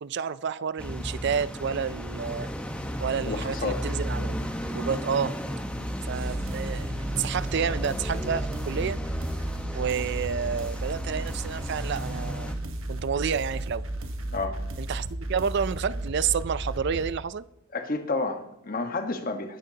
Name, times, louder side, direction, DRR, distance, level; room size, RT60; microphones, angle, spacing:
voice 1, 0.0-2.5 3.0-5.4 6.0-6.9 7.2-9.0 9.7-12.6 12.9-13.8 14.8-17.4, right 7 dB, 55° right, 16 dB, 0.4 m, -30 dB
sound 1, 0.8-12.5, equal, 5° left, 1.1 m, -34 dB
voice 2, 3.3-3.8 5.8-5.9 14.3-14.6 17.7-19.6, left 3 dB, 45° left, 6 dB, 1.3 m, -30 dB
sound 2, 6.1-17.1, right 1 dB, 75° right, 1.3 m, -34 dB
20.0 x 10.0 x 2.8 m, 0.79 s
head